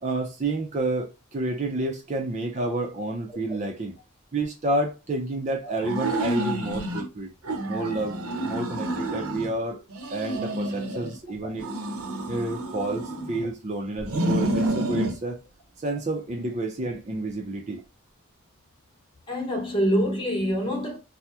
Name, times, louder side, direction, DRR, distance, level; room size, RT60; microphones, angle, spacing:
voice 1, 0.0-3.9 4.3-7.3 7.7-9.8 10.1-11.7 12.3-15.4 15.8-17.8, right 2 dB, 30° right, 0.4 m, -29 dB
sound 1, 5.8-7.1 7.4-9.5 9.9-11.2 11.6-13.5 14.0-15.2, right 1 dB, 80° right, 0.7 m, -29 dB
voice 2, 19.3-21.0, equal, 20° left, 0.9 m, -25 dB
2.8 x 2.0 x 3.4 m
head